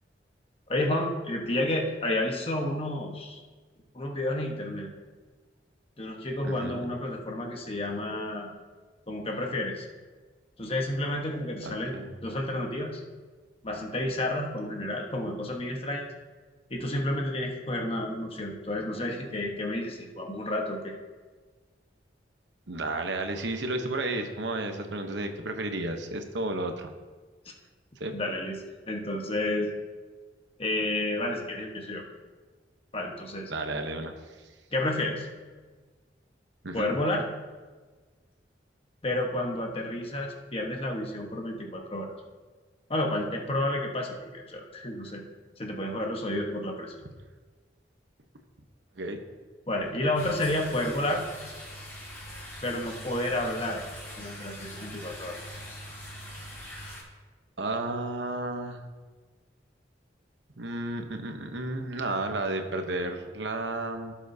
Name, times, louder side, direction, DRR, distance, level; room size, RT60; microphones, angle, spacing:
voice 1, 0.7-3.4 3.9-4.9 6.0-8.5 9.1-9.9 10.6-13.0 13.6-16.1 16.7-21.0 28.1-28.6 28.9-29.7 30.6-32.0 32.9-33.5 34.7-35.3 36.7-37.2 39.0-42.1 42.9-45.2 45.6-46.9 49.7-51.2 52.6-53.8 54.2-55.4, left 1 dB, 35° left, 1 dB, 1.3 m, -30 dB
voice 2, 6.4-7.0 11.6-12.2 22.7-26.9 28.0-28.2 33.5-34.4 36.6-36.9 49.0-49.2 57.6-58.8 60.6-64.1, right 2 dB, 90° right, 6 dB, 1.0 m, -32 dB
sound 1, 50.1-57.0, equal, 15° left, 3.2 m, -42 dB
16.5 x 7.2 x 2.8 m, 1.4 s
head